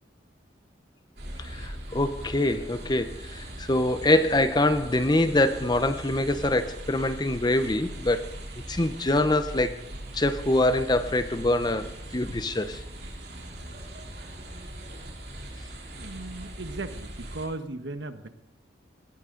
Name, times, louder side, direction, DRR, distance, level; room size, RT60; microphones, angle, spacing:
sound 1, 1.2-17.5, right 1 dB, 60° right, 3.3 m, -40 dB
voice 1, 1.4-8.3 8.7-9.8 10.1-12.8, left 1 dB, 25° left, 0.7 m, -24 dB
voice 2, 16.0-18.3, right 2 dB, 75° right, 1.3 m, -37 dB
18.5 x 16.5 x 3.9 m
head